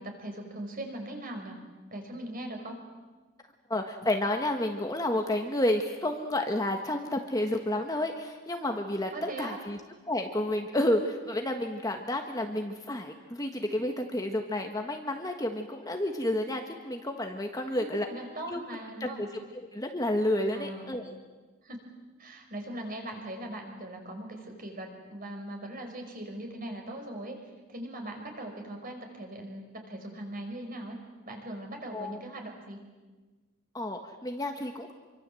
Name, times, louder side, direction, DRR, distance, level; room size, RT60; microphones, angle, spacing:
voice 1, 0.0-1.6 1.9-2.8 9.1-9.6 17.6-19.3 20.5-21.0 21.6-21.8 22.2-27.4 27.7-31.0 31.3-32.8, right 1 dB, 40° right, 3 dB, 5.3 m, -40 dB
voice 2, 3.7-9.8 10.1-18.1 18.5-18.6 19.0-19.1 19.7-21.1 31.9-32.2 33.7-34.9, left 1 dB, 15° left, 3 dB, 1.5 m, -30 dB
27.0 x 24.5 x 7.8 m, 1.3 s
head